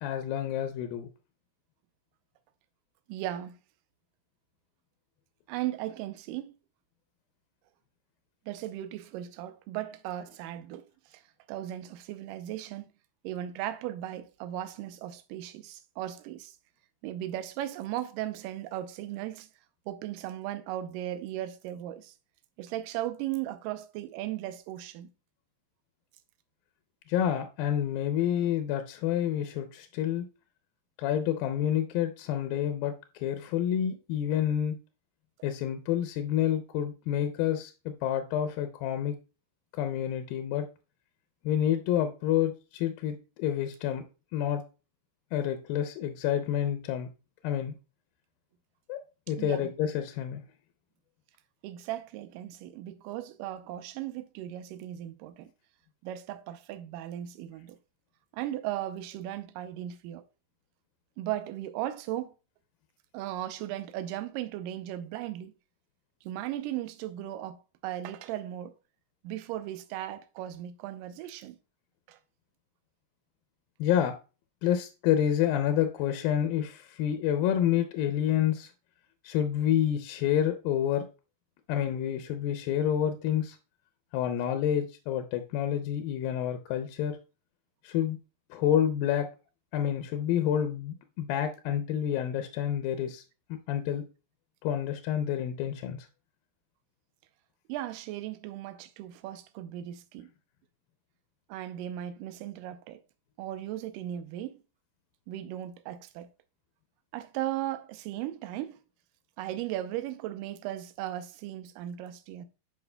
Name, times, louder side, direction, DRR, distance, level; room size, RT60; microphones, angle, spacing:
voice 1, 0.0-1.1 27.1-30.3 31.0-34.8 35.4-37.7 38.0-39.1 39.7-40.7 41.4-44.0 44.3-44.6 45.3-47.1 47.4-47.7 48.9-49.0 49.3-50.4 73.8-74.1 74.6-78.7 79.2-81.0 81.7-83.6 84.1-87.2 87.8-88.2 88.5-89.3 89.7-93.2 93.7-94.0 94.6-96.1, left 10 dB, 80° left, 2.3 m, -28 dB
voice 2, 3.1-3.6 5.5-6.6 8.5-11.2 11.5-12.9 13.2-16.6 17.0-19.5 19.9-22.1 22.6-25.1 49.4-49.7 51.6-55.5 56.0-57.8 58.3-60.2 61.2-62.3 63.1-65.5 66.2-68.7 69.2-71.6 72.1-72.2 97.7-100.3 101.5-103.0 103.4-104.6 105.3-106.3 107.1-108.8 109.4-112.5, right 13 dB, 80° right, 2.1 m, -37 dB
10.5 x 5.5 x 2.2 m
omnidirectional pair, 4.3 m